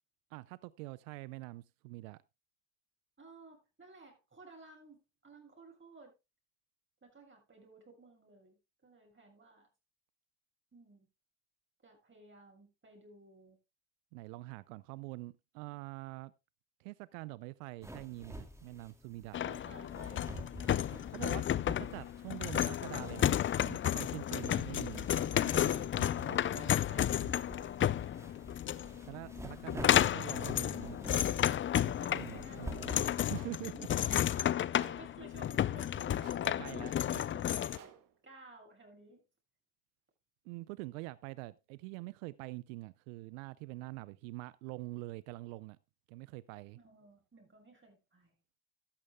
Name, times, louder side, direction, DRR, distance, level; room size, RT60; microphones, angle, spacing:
voice 1, 0.3-2.2 14.1-16.3 16.8-19.4 21.1-26.4 29.0-31.0 31.8-33.0 33.3-33.9 36.5-37.2 40.4-45.8 46.1-46.8, right 21 dB, 80° right, 0.6 m, -45 dB
voice 2, 3.2-6.1 7.0-9.7 10.7-11.1 11.8-13.6 19.4-21.5 26.5-28.4 32.0-37.9 38.2-39.2 46.7-48.4, right 3 dB, 30° right, 7.2 m, -56 dB
sound 1, 17.8-33.2, equal, 5° right, 2.5 m, -50 dB
sound 2, 19.3-37.8, left 11 dB, 30° left, 0.5 m, -32 dB
sound 3, 33.3-33.7 34.7-35.2 36.2-36.6 37.7-38.2, right 9 dB, 55° right, 1.7 m, -56 dB
14.5 x 12.5 x 2.2 m
hypercardioid pair, 55°, 39 cm